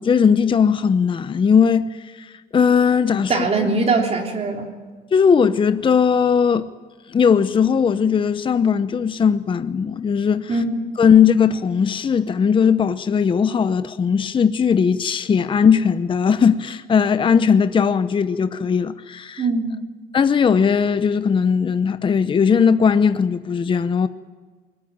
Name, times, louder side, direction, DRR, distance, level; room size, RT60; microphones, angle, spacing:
voice 1, 0.0-3.7 5.1-6.7 7.1-10.6 11.0-19.4 20.1-24.1, left 6 dB, 30° left, 0.8 m, -18 dB
voice 2, 3.3-4.7 10.5-10.9 19.4-19.8, right 3 dB, 40° right, 3.5 m, -21 dB
21.5 x 20.0 x 8.9 m
cardioid pair, 110°, 17 cm